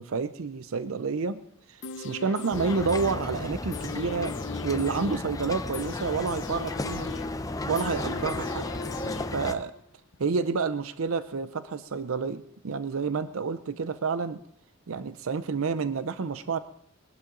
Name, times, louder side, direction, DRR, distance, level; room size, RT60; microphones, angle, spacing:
voice 1, 0.0-1.4 1.7-4.4 4.6-7.1 7.7-8.6 9.1-9.7 10.2-14.4 14.9-16.6, right 5 dB, 75° right, 13 dB, 0.6 m, -29 dB
sound 1, 1.8-9.8 10.1-10.2, left 5 dB, 60° left, 0.7 m, -40 dB
sound 2, 2.5-9.5, left 2 dB, 15° left, 0.6 m, -34 dB
22.0 x 11.5 x 3.8 m, 0.68 s
head